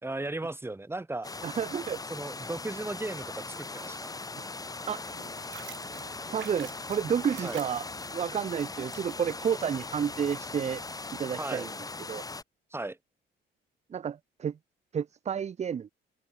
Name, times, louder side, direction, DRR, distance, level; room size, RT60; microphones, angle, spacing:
voice 1, 0.0-1.3 2.1-4.1 7.4-7.6 11.4-11.7 12.7-13.0, right 2 dB, 10° right, 1.6 m, -36 dB
sound 1, 1.2-12.4, left 3 dB, 20° left, 1.2 m, -40 dB
voice 2, 1.4-2.0 4.9-5.0 6.3-7.8 8.1-10.8 11.2-11.7 12.1-12.2 13.9-14.5 14.9-15.9, right 8 dB, 35° right, 0.5 m, -30 dB
sound 2, 5.1-11.2, right 11 dB, 70° right, 4.2 m, -50 dB
cardioid pair, 90°, 20 cm